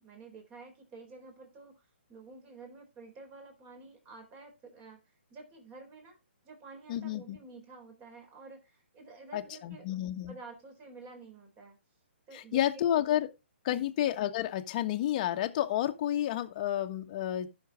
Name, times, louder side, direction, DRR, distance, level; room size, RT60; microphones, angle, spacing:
voice 1, 0.0-1.7 2.1-5.0 5.3-6.2 6.4-11.8 12.3-12.8 13.7-13.9, right 4 dB, 25° right, 3.9 m, -50 dB
voice 2, 6.9-7.4 9.3-10.3 12.3-13.3 13.6-17.5, left 12 dB, 40° left, 1.3 m, -30 dB
15.0 x 6.6 x 3.6 m
hypercardioid pair, 140°, 6 cm